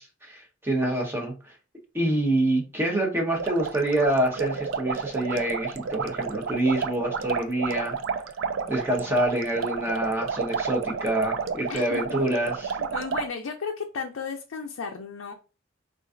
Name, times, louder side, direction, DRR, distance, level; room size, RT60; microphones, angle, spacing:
voice 1, 0.0-1.3 1.9-8.0 8.7-12.8, right 1 dB, 10° right, 0.8 m, -26 dB
sound 1, 3.4-13.3, right 6 dB, 75° right, 0.4 m, -31 dB
voice 2, 11.7-12.0 12.8-15.3, left 5 dB, 85° left, 0.4 m, -34 dB
3.8 x 2.4 x 2.5 m
head